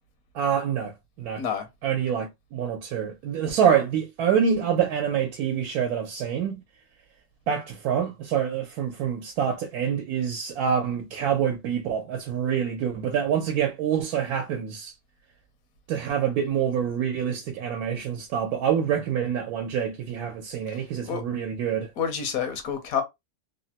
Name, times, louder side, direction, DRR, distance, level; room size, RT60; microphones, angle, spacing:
voice 1, 0.3-1.4 1.8-6.6 7.5-14.9 15.9-21.9, right 8 dB, 85° right, 1.1 m, -26 dB
voice 2, 22.0-23.0, left 7 dB, 75° left, 1.1 m, -28 dB
3.1 x 2.1 x 2.8 m
omnidirectional pair, 1.6 m